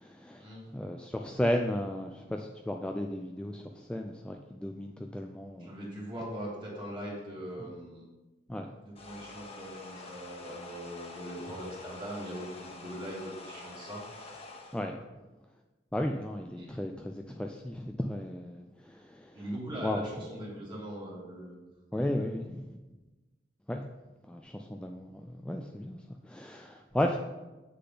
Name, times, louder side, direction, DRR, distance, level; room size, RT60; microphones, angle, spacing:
voice 1, 0.0-5.8 8.5-8.7 14.7-15.0 15.9-19.4 19.8-20.0 20.8-20.9 21.9-22.7 23.7-23.8 24.3-26.0 26.2-27.2, left 1 dB, 5° left, 3 dB, 0.3 m, -34 dB
voice 2, 5.6-8.0 8.8-14.3 14.9-15.0 16.6-16.8 19.3-21.6 21.9-22.3, equal, 25° right, -4 dB, 2.3 m, -41 dB
sound 1, 9.0-14.8, left 3 dB, 35° left, 1.2 m, -47 dB
7.7 x 6.7 x 3.9 m, 1.1 s
head